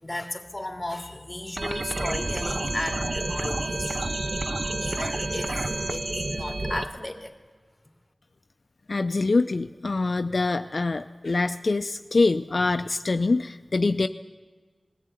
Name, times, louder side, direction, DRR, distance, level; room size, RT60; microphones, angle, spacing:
voice 1, 0.0-4.1 4.8-7.3, left 1 dB, 25° left, 3 dB, 2.7 m, -35 dB
sound 1, 1.6-6.8, right 2 dB, 55° right, 1.1 m, -29 dB
voice 2, 8.9-14.1, left 3 dB, 70° left, 8 dB, 0.5 m, -24 dB
20.5 x 14.0 x 9.1 m, 1.5 s
wide cardioid pair, 45°, 0 cm